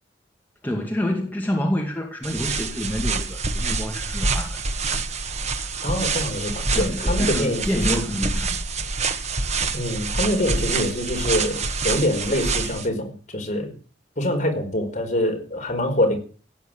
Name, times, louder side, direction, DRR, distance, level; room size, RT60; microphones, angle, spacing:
voice 1, 0.6-4.6 6.7-8.6, left 1 dB, 10° left, 2.3 m, -28 dB
sound 1, 2.2-12.9, right 3 dB, 40° right, 1.6 m, -26 dB
voice 2, 5.8-7.6 7.9-8.0 9.7-13.7 14.2-16.2, left 1 dB, 40° left, 5.0 m, -25 dB
17.0 x 9.2 x 9.0 m
head